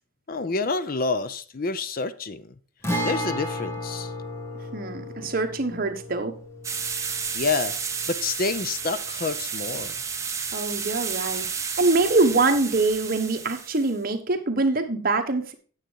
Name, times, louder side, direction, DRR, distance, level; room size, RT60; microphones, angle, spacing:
voice 1, 0.3-2.5 3.0-4.1 7.3-7.7 8.1-9.9, left 4 dB, 45° left, 0.5 m, -28 dB
Guitar, 2.8-10.5 10.7-10.8 12.8-13.0, equal, 15° left, 1.5 m, -34 dB
voice 2, 4.7-6.3 10.5-15.5, right 3 dB, 45° right, 1.2 m, -24 dB
sound 1, 6.6-13.9, right 6 dB, 15° right, 0.9 m, -32 dB
9.2 x 7.3 x 4.6 m
head